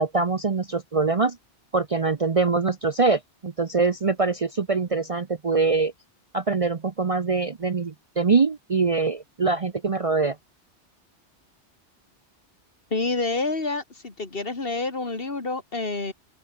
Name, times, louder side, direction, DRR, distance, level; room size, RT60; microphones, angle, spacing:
voice 1, 0.0-1.4 1.7-5.9 6.3-10.4, right 4 dB, 35° right, 0.7 m, -23 dB
voice 2, 12.9-16.1, left 3 dB, 55° left, 2.7 m, -28 dB
open air
omnidirectional pair, 1.2 m